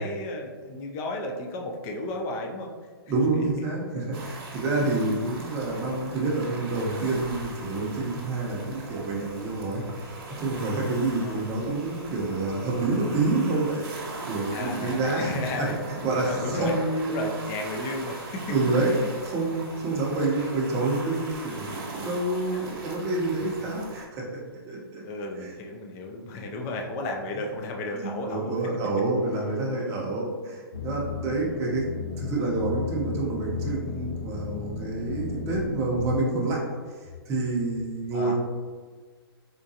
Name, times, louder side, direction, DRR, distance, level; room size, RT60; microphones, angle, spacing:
voice 1, 0.0-2.7 3.3-3.4 11.2-11.5 13.7-13.9 14.5-15.7 16.0-16.8 17.1-18.5 22.5-23.1 25.0-28.6 31.4-31.6 38.1-38.3, left 2 dB, 20° left, 1 dB, 0.3 m, -34 dB
voice 2, 3.1-10.1 10.4-15.3 15.6-17.3 18.5-19.0 19.2-24.4 24.7-25.0 25.4-25.5 27.9-31.8 32.2-36.6 37.3-38.3, right 2 dB, 20° right, -3 dB, 0.7 m, -28 dB
sound 1, 4.1-24.0, right 2 dB, 60° right, 1.0 m, -40 dB
sound 2, 30.7-36.2, left 5 dB, 80° left, 0.6 m, -34 dB
3.7 x 2.2 x 2.7 m, 1.5 s
hypercardioid pair, 145°, 13 cm